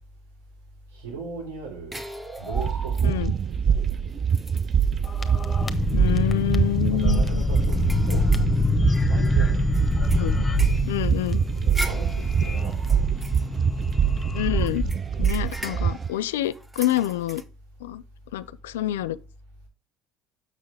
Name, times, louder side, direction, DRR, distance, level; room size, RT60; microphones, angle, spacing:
voice 1, 0.9-2.0 2.4-3.2 3.7-4.3 6.9-8.3 9.1-9.6 11.6-13.1, right 4 dB, 90° right, 3.8 m, -38 dB
sound 1, 1.9-3.4 3.9-4.0 4.3-5.2 5.7-5.9 6.3-6.4 6.9-9.3 9.7-14.2 14.7-17.4, right 1 dB, 10° right, 1.1 m, -40 dB
sound 2, 2.5-16.1, right 7 dB, 40° right, 0.4 m, -24 dB
voice 2, 3.0-3.3 5.9-7.4 10.1-10.3 10.9-11.4 14.3-14.9 15.2-17.4 17.8-18.0 18.3-19.2, left 13 dB, 90° left, 0.4 m, -27 dB
sound 3, 5.0-14.9, left 4 dB, 20° left, 1.1 m, -27 dB
6.6 x 6.2 x 3.4 m
hypercardioid pair, 75°, 0 cm